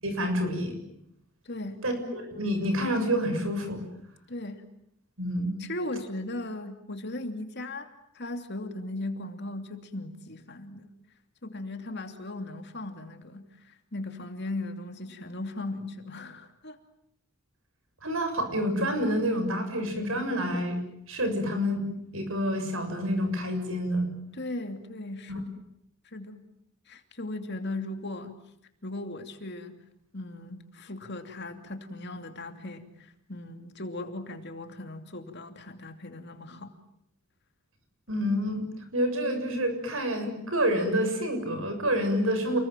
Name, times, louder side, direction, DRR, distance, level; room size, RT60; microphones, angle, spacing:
voice 1, 0.0-0.8 1.8-3.8 5.2-5.5 18.0-20.8 21.1-21.8 22.1-24.1 25.3-25.4 38.1-38.6 38.9-42.6, equal, 65° right, 7 dB, 7.1 m, -28 dB
voice 2, 1.4-1.8 4.3-4.6 5.6-7.9 8.1-10.9 11.4-16.8 24.3-25.4 26.0-26.4 26.9-28.4 28.8-29.8 30.1-36.7, left 2 dB, 50° left, 6 dB, 2.8 m, -37 dB
29.5 x 21.5 x 9.1 m, 0.76 s
head